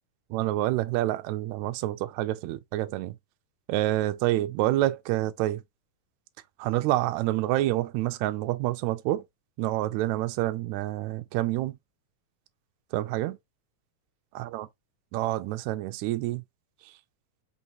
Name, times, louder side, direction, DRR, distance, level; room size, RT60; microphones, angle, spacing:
voice 1, 0.3-3.1 3.7-5.6 6.6-9.2 9.6-11.7 12.9-13.4 14.3-14.7 15.1-16.4, right 15 dB, 80° right, 1.7 m, -27 dB
5.2 x 2.8 x 2.8 m
omnidirectional pair, 3.6 m